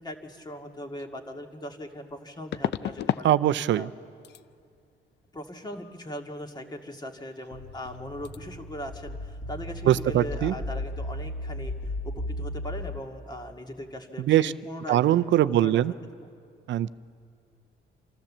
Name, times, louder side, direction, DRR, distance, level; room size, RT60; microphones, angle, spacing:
voice 1, 0.0-3.3 3.8-3.9 5.3-15.0 15.4-15.8 16.2-16.3, equal, 20° left, 4 dB, 2.0 m, -39 dB
sound 1, 1.0-1.1 2.5-3.3 3.6-4.0 4.2-4.4 7.4-7.5 7.7-8.0 8.2-8.4, left 11 dB, 60° left, 0.5 m, -31 dB
voice 2, 3.2-3.9 9.9-10.5 14.3-14.5 14.9-15.9 16.7-16.9, right 12 dB, 70° right, 15 dB, 0.5 m, -22 dB
sound 2, 7.5-12.8, left 1 dB, 40° left, 2.5 m, -35 dB
27.0 x 13.5 x 7.3 m, 2.3 s
cardioid pair, 90°, 20 cm